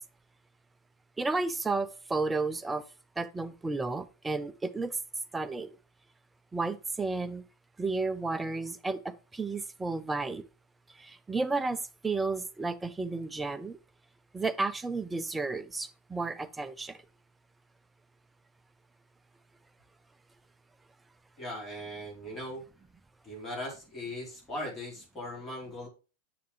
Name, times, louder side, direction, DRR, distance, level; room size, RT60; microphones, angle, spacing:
voice 1, 1.2-2.8 3.2-5.0 5.3-5.8 6.5-7.4 7.8-10.4 11.0-13.8 14.3-17.0, right 3 dB, 10° right, 0.7 m, -32 dB
voice 2, 21.4-22.6 23.2-25.9, left 1 dB, 20° left, 3.7 m, -39 dB
7.7 x 6.8 x 3.2 m
figure-of-eight pair, 90°, 0 cm